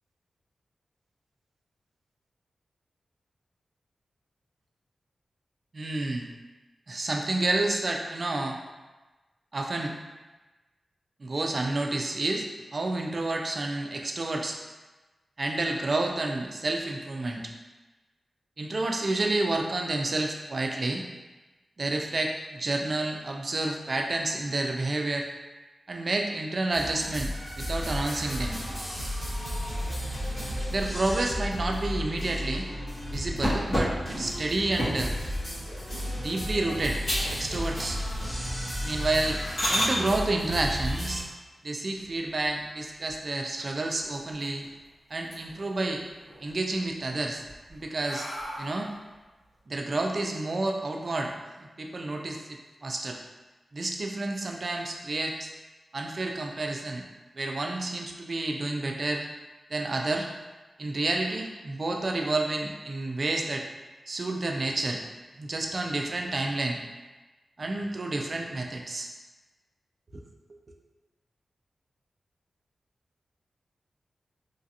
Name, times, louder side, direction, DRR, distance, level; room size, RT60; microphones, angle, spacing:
voice 1, 5.7-6.3 6.9-8.6 9.5-9.9 11.2-12.5 12.7-14.6 15.4-17.5 18.6-21.1 21.8-25.3 25.9-28.6 30.7-32.7 33.1-35.1 36.2-37.0 37.3-38.0 38.8-39.4 39.7-41.2 41.6-44.7 45.1-46.0 46.4-47.4 47.7-48.3 48.6-48.9 49.7-51.3 51.6-53.2 53.7-55.5 55.9-57.1 57.4-59.3 59.7-60.3 60.8-63.7 64.1-65.0 65.4-66.8 67.6-69.1 70.1-70.2, right 2 dB, 40° right, 2 dB, 0.3 m, -30 dB
sound 1, 26.7-41.2, equal, 20° left, 1.3 m, -33 dB
sound 2, 33.4-35.2 35.8-36.1 36.5-36.6 37.0-37.4 37.7-38.2 38.6-38.7 39.2-39.9 41.9-42.6 43.1-43.2 43.6-43.7 44.0-44.8 45.1-45.7 46.1-46.8 47.3-49.0, equal, 65° left, 1.4 m, -32 dB
3.1 x 2.4 x 2.7 m, 1.2 s
wide cardioid pair, 140°, 0 cm